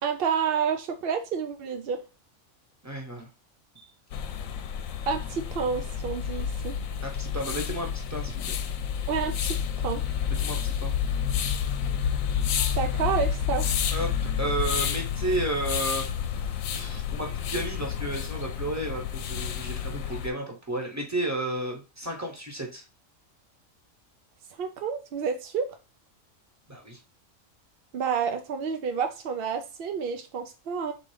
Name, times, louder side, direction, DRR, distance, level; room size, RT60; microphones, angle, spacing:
voice 1, 0.0-2.0 5.1-6.7 9.1-9.6 9.8-10.0 12.8-13.7 24.6-25.8 27.9-30.9, right 6 dB, 60° right, 6 dB, 0.6 m, -29 dB
voice 2, 2.8-3.3 3.7-3.9 7.0-8.5 10.3-10.9 13.9-16.1 16.7-22.8 26.7-27.0, right 1 dB, 15° right, 0 dB, 1.0 m, -32 dB
sound 1, 4.1-20.3, left 8 dB, 85° left, 1.0 m, -30 dB
3.7 x 2.9 x 4.7 m, 0.30 s
omnidirectional pair, 1.4 m